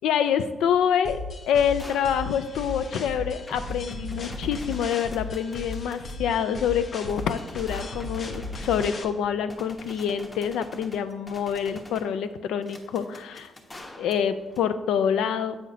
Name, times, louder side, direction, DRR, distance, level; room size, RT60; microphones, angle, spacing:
voice 1, 0.0-13.5 14.0-15.6, left 8 dB, 85° left, 11 dB, 0.3 m, -26 dB
sound 1, 1.0-9.0, left 2 dB, 55° left, 0.7 m, -36 dB
sound 2, 1.3-14.6, left 1 dB, 25° left, 0.9 m, -46 dB
7.4 x 5.7 x 2.7 m, 1.1 s
cardioid pair, 80°, 0 cm